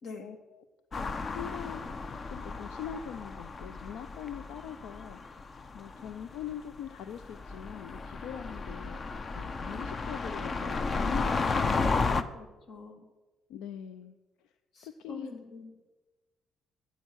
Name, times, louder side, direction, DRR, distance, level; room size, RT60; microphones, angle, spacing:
voice 1, 0.2-0.6 0.9-1.8 2.3-5.2 5.7-9.0 9.3-12.0 13.5-14.1 14.4-14.5 14.8-15.3, left 9 dB, 90° left, 10 dB, 0.5 m, -42 dB
sound 1, 0.9-12.2, left 4 dB, 40° left, 0.7 m, -33 dB
voice 2, 12.3-13.0 14.7-15.9, left 3 dB, 65° left, 4 dB, 2.4 m, -46 dB
12.5 x 8.3 x 6.3 m, 1.2 s
cardioid pair, 85°, 0 cm